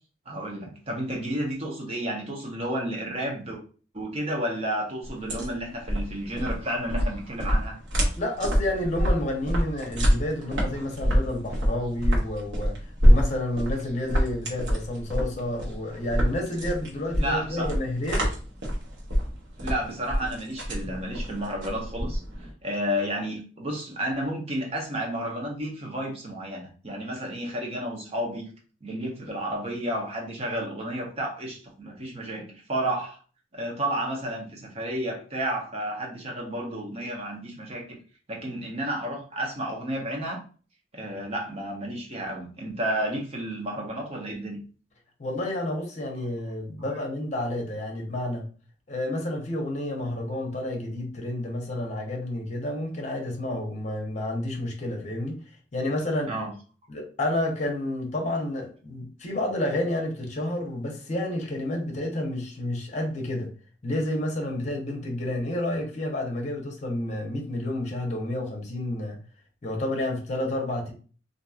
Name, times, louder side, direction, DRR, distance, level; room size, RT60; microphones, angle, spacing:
voice 1, 0.3-3.6 3.9-7.8 17.2-17.7 19.6-22.2 22.6-28.5 28.8-33.2 33.5-38.0 38.3-40.4 40.9-44.6 46.9-47.0 56.3-56.5, right 1 dB, 35° right, 0.8 m, -31 dB
sound 1, 5.0-22.5, equal, 75° right, 1.0 m, -26 dB
voice 2, 8.2-12.7 13.0-18.2 45.2-48.5 48.9-55.4 55.7-56.3 56.9-63.5 63.8-69.2 69.6-70.9, left 1 dB, 40° left, 0.8 m, -30 dB
2.9 x 2.6 x 2.3 m
head